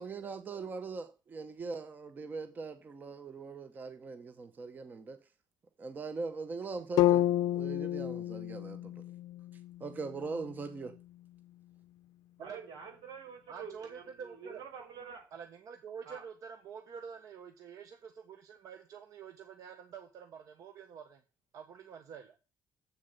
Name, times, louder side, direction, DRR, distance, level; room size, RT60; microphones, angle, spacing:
voice 1, 0.0-5.2 5.8-7.3 7.5-9.0 9.8-10.9, right 4 dB, 25° right, 0.8 m, -41 dB
sound 1, 7.0-11.0, left 13 dB, 75° left, 0.5 m, -31 dB
voice 2, 12.4-15.3 16.0-16.2, right 6 dB, 85° right, 5.0 m, -47 dB
voice 3, 13.5-14.6 15.3-21.2 21.5-22.4, right 7 dB, 55° right, 1.1 m, -47 dB
7.9 x 7.2 x 7.9 m
cardioid pair, 175°, 7 cm